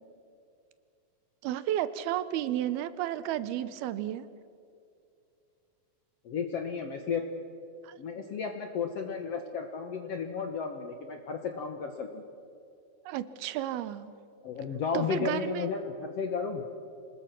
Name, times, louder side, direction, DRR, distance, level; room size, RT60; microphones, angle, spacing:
voice 1, 1.4-4.3 7.8-8.0 13.1-14.1 14.9-15.7, right 12 dB, 90° right, 14 dB, 2.8 m, -32 dB
voice 2, 6.2-7.3 8.0-12.2 14.4-16.6, left 6 dB, 65° left, 5 dB, 1.6 m, -33 dB
26.0 x 20.0 x 6.0 m, 2.5 s
omnidirectional pair, 4.3 m